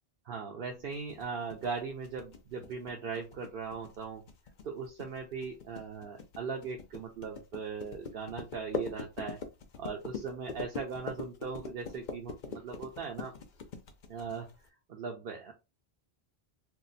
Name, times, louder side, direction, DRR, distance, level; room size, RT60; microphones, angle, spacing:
voice 1, 0.2-4.2 4.6-9.4 9.8-13.3 14.1-14.5 14.9-15.5, right 5 dB, 65° right, 1 dB, 0.8 m, -39 dB
sound 1, 0.9-14.7, left 5 dB, 55° left, 0.7 m, -42 dB
2.7 x 2.1 x 4.0 m, 0.26 s
omnidirectional pair, 1.0 m